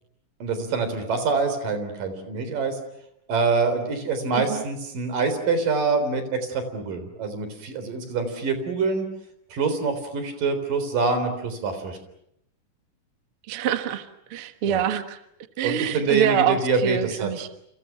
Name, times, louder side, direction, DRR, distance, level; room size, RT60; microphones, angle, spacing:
voice 1, 0.4-2.8 3.3-9.1 9.5-12.0 14.7-14.8 15.6-17.3, right 4 dB, 80° right, 9 dB, 5.5 m, -25 dB
voice 2, 13.5-15.2 15.6-17.5, right 9 dB, 50° right, 9 dB, 2.0 m, -26 dB
29.5 x 28.5 x 6.0 m, 0.75 s
omnidirectional pair, 3.8 m